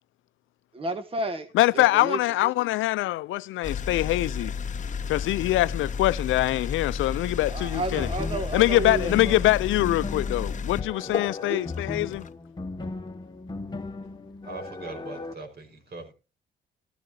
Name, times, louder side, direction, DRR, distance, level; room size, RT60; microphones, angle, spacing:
voice 1, 0.7-1.5 1.7-2.5 7.4-9.4 11.5-11.6, right 2 dB, 30° right, 1.3 m, -32 dB
voice 2, 1.5-4.5 5.1-8.1 8.5-12.3, left 16 dB, 85° left, 0.5 m, -24 dB
sound 1, 3.6-12.3, left 6 dB, 40° left, 0.7 m, -32 dB
sound 2, 7.9-15.3, left 3 dB, 20° left, 1.4 m, -37 dB
voice 3, 14.4-16.1, right 3 dB, 55° right, 5.1 m, -40 dB
14.5 x 13.5 x 2.8 m
cardioid pair, 90°, 20 cm